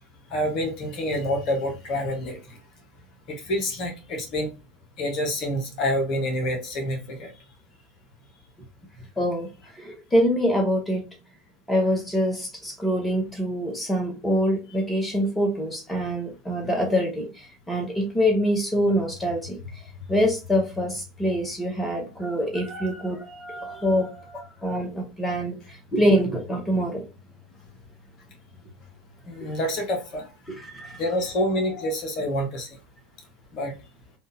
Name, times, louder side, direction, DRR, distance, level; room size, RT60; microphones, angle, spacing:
voice 1, 0.3-2.4 3.3-4.5 5.0-7.3 29.3-30.2 31.0-32.7 33.5-33.7, left 1 dB, 45° left, 1.1 m, -27 dB
voice 2, 9.2-9.5 10.1-11.0 11.7-17.3 17.7-19.6 20.1-25.5 25.9-27.0 30.8-30.9, equal, 10° left, 1.1 m, -24 dB
3.6 x 2.5 x 2.7 m
figure-of-eight pair, 80°, 0 cm